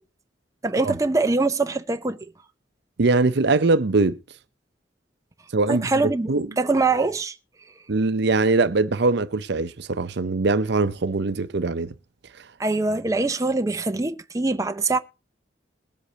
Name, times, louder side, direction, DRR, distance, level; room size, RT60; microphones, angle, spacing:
voice 1, 0.6-2.2 5.7-7.3 12.6-15.0, right 3 dB, 15° right, 0.5 m, -23 dB
voice 2, 3.0-4.2 5.5-6.5 7.9-11.9, right 3 dB, 60° right, 0.6 m, -22 dB
21.0 x 8.1 x 2.8 m
head